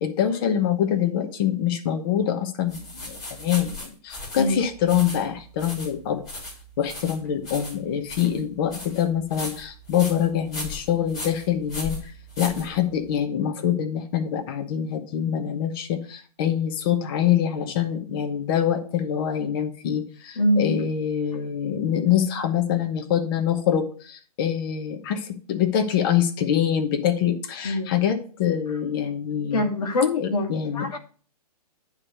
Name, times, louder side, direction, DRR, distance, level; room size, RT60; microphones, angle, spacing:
voice 1, 0.0-6.2 6.8-12.0 12.4-29.7 30.2-31.0, left 9 dB, 35° left, 6 dB, 1.0 m, -25 dB
sound 1, 2.7-13.2, left 2 dB, 20° left, 2.8 m, -37 dB
voice 2, 20.4-20.8 27.6-27.9 29.5-30.5 30.7-31.0, left 2 dB, 60° left, 4 dB, 1.9 m, -23 dB
9.6 x 3.2 x 6.7 m, 0.41 s
hypercardioid pair, 155°, 21 cm